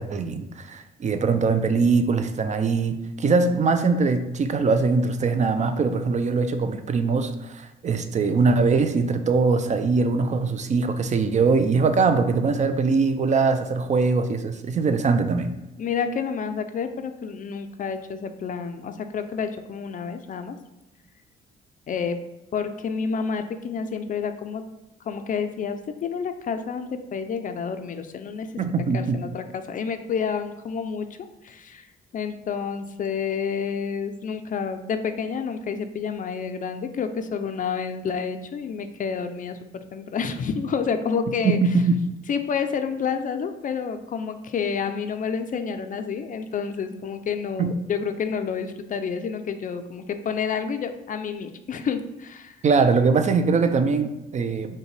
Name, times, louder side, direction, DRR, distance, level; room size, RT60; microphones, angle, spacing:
voice 1, 0.0-15.5 28.6-29.2 41.4-42.0 47.6-47.7 52.6-54.8, right 4 dB, 35° right, 8 dB, 0.4 m, -22 dB
voice 2, 15.8-20.6 21.9-22.2 22.5-24.6 25.1-28.5 28.9-31.1 31.4-31.9 32.1-41.6 42.3-52.6, left 6 dB, 40° left, 9 dB, 0.4 m, -29 dB
5.3 x 2.2 x 3.2 m, 0.98 s
cardioid pair, 90°, 20 cm